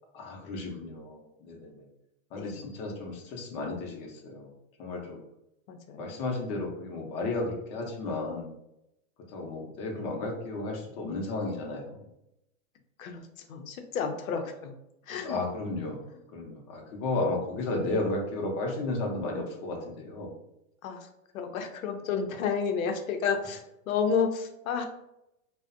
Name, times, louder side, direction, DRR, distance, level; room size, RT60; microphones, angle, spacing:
voice 1, 0.1-1.9 2.3-4.5 4.8-5.2 6.0-8.5 9.3-12.1 15.1-16.0 16.3-20.3, left 2 dB, 30° left, 0 dB, 0.5 m, -33 dB
voice 2, 2.3-2.7 5.7-6.2 13.0-14.7 15.1-15.4 20.8-21.1 21.3-24.8, left 6 dB, 85° left, 6 dB, 0.6 m, -31 dB
2.4 x 2.1 x 2.4 m, 0.84 s
supercardioid pair, 140°, 41 cm